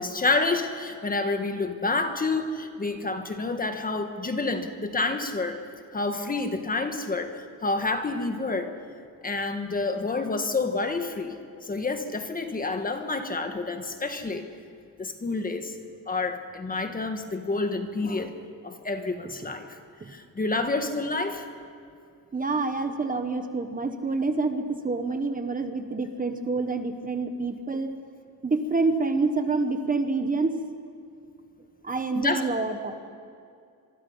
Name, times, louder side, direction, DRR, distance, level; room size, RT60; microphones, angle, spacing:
voice 1, 0.0-5.6 5.9-8.7 9.2-11.4 11.6-14.5 15.0-15.8 16.1-18.3 18.6-19.8 20.1-21.4 32.1-32.5, left 3 dB, 25° left, 6 dB, 1.5 m, -28 dB
voice 2, 22.3-27.9 28.4-30.5 31.8-32.9, right 3 dB, 25° right, 7 dB, 1.3 m, -27 dB
25.5 x 23.0 x 5.7 m, 2.4 s
cardioid pair, 140°, 36 cm